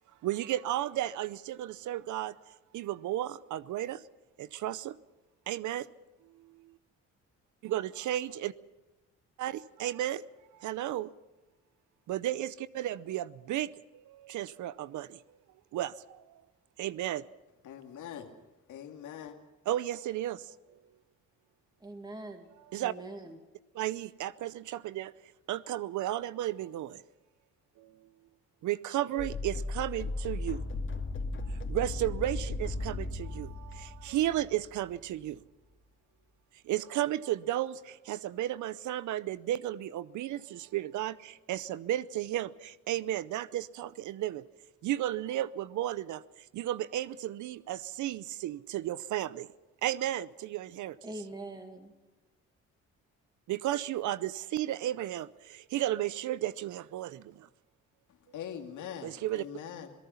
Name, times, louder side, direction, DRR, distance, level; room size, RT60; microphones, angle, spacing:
voice 1, 0.2-4.0 4.4-4.9 5.5-5.9 7.6-8.5 9.4-10.2 10.6-11.1 12.1-15.2 15.7-16.3 16.8-17.2 19.7-20.4 22.7-22.9 23.7-25.1 25.5-27.0 27.8-27.9 28.6-30.6 31.5-35.4 36.6-44.4 44.8-46.2 46.5-49.5 49.8-51.1 53.5-57.5 59.0-59.4, right 13 dB, 75° right, 0.7 m, -34 dB
voice 2, 17.6-18.3 18.7-19.3 58.1-59.9, left 9 dB, 80° left, 2.4 m, -43 dB
voice 3, 21.8-22.5 22.8-23.4 51.0-51.9, right 2 dB, 15° right, 2.2 m, -43 dB
sound 1, 29.2-34.9, left 3 dB, 40° left, 2.4 m, -36 dB
26.5 x 18.0 x 5.7 m
cardioid pair, 90°, 30 cm